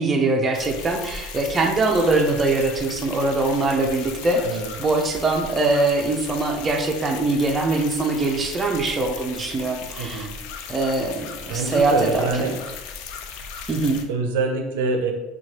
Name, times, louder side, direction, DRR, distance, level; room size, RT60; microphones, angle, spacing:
voice 1, 0.0-4.4 4.8-10.3 10.7-12.2 13.7-14.0, right 2 dB, 25° right, 2 dB, 0.4 m, -22 dB
sound 1, 0.5-14.0, left 6 dB, 70° left, 0.3 m, -37 dB
voice 2, 4.4-4.7 10.0-10.4 11.5-12.6 14.1-15.1, right 4 dB, 90° right, 4 dB, 0.4 m, -25 dB
3.0 x 2.2 x 2.9 m, 1.1 s
supercardioid pair, 120°, 0 cm